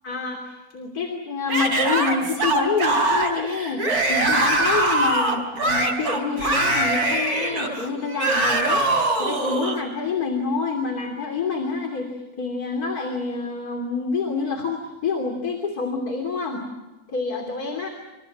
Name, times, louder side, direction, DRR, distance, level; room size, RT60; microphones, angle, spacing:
voice 1, 0.0-12.1 12.4-16.7 17.1-17.9, left 4 dB, 80° left, 3 dB, 3.5 m, -27 dB
Yell / Screaming, 1.5-9.8, right 2 dB, 90° right, 5.7 m, -22 dB
29.0 x 27.5 x 6.0 m, 1.1 s
omnidirectional pair, 1.6 m